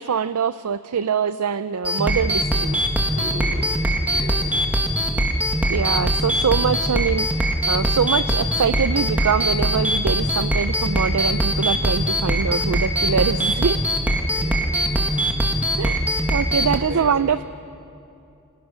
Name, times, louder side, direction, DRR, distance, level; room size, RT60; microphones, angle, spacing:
voice 1, 0.0-2.9 5.7-7.4 7.7-13.8 15.8-17.4, right 6 dB, 85° right, 13 dB, 0.5 m, -23 dB
sound 1, 1.8-16.8, equal, 5° right, 1.9 m, -22 dB
voice 2, 3.0-4.5 14.2-14.5 15.1-15.3 15.7-15.8 16.2-16.3 16.9-17.1, equal, 70° right, 0 dB, 6.8 m, -37 dB
29.0 x 25.5 x 6.3 m, 2.6 s
head